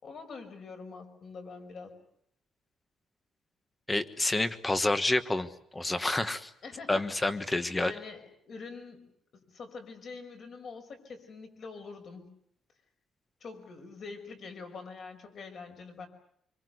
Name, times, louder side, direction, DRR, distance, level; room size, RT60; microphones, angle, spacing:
voice 1, 0.0-2.0 6.6-7.1 7.7-9.1 9.3-12.3 13.4-16.1, left 4 dB, 40° left, 6 dB, 5.5 m, -45 dB
voice 2, 3.9-6.5 6.9-7.9, left 2 dB, 10° left, 12 dB, 1.4 m, -29 dB
26.5 x 24.5 x 8.1 m, 0.69 s
cardioid pair, 175°, 0 cm